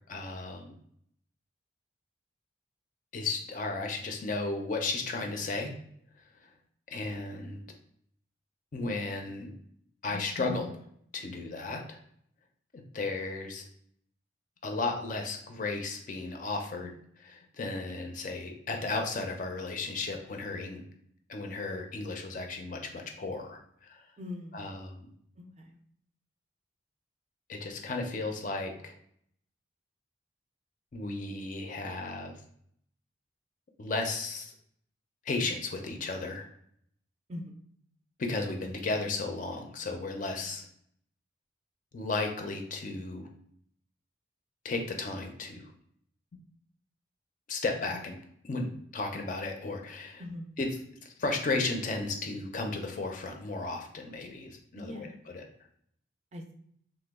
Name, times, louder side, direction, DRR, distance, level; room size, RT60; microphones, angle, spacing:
voice 1, 0.1-0.7 3.1-5.7 6.9-7.6 8.7-9.5 10.0-10.8 11.1-12.0 12.7-13.7 14.6-20.8 21.3-24.0 24.5-25.1 27.5-28.9 30.9-32.4 33.8-34.5 35.2-36.5 38.2-40.7 41.9-43.3 44.6-45.7 47.5-48.2 48.4-48.7 48.9-50.2 50.6-50.7 51.0-55.1 55.3-55.5, left 3 dB, 40° left, 4 dB, 0.4 m, -34 dB
voice 2, 24.2-24.6 25.4-25.8 37.3-37.6 50.2-50.5 54.7-55.1 56.3-56.5, left 1 dB, 35° right, 3 dB, 0.4 m, -42 dB
2.9 x 2.1 x 3.4 m, 0.67 s
head